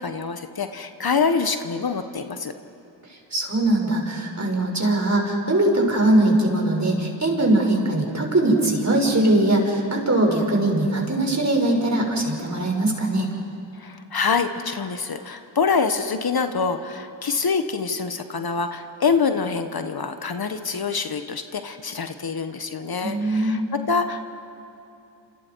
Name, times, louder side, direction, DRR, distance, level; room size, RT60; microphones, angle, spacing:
voice 1, 0.0-2.5 13.8-23.6 23.9-24.3, left 5 dB, 50° left, 8 dB, 1.4 m, -25 dB
voice 2, 3.3-13.3 23.0-23.6, right 1 dB, 35° right, 1 dB, 5.8 m, -21 dB
27.5 x 27.5 x 4.7 m, 2.8 s
cardioid pair, 50°, 48 cm